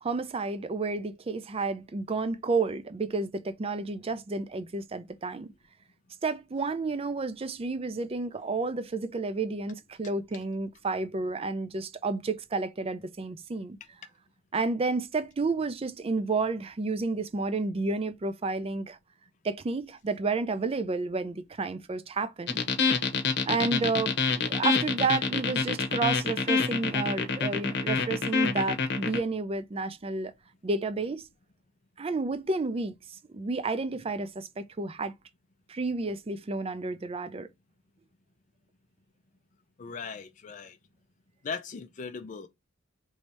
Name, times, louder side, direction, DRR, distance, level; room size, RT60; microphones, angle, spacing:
voice 1, 0.0-5.5 6.2-13.8 14.5-19.0 19.4-22.6 23.5-30.3 30.6-31.2 32.0-35.1 35.7-37.5, right 3 dB, 30° right, 0.4 m, -31 dB
sound 1, 22.5-29.2, left 5 dB, 60° left, 0.9 m, -26 dB
voice 2, 39.8-40.8 41.4-42.5, left 5 dB, 40° left, 0.4 m, -38 dB
3.1 x 2.7 x 4.5 m
head